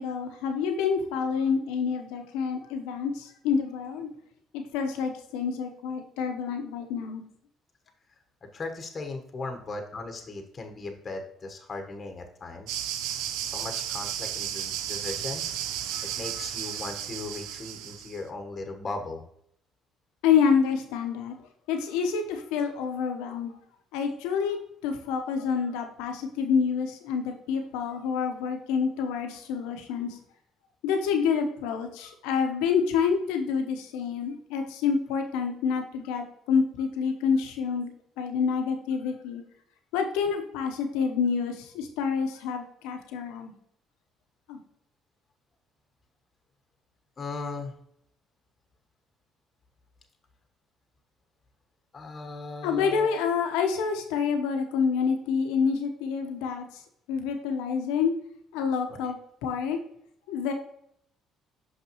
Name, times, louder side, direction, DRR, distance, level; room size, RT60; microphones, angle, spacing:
voice 1, 0.0-4.1 4.5-7.2 20.2-21.3 21.7-23.6 23.9-24.6 24.8-30.2 30.8-37.9 38.2-39.4 39.9-43.5 44.5-44.6 52.6-56.8 57.1-58.1 58.5-59.2 59.4-59.8 60.3-60.5, left 6 dB, 85° left, 5 dB, 0.9 m, -27 dB
voice 2, 8.5-12.8 13.4-15.4 16.2-19.2 47.2-47.7 51.9-53.2 58.9-59.0, left 3 dB, 40° left, 4 dB, 1.1 m, -37 dB
sound 1, 12.7-18.2, right 10 dB, 80° right, 0.5 m, -33 dB
5.8 x 5.6 x 3.0 m, 0.69 s
supercardioid pair, 70°, 0 cm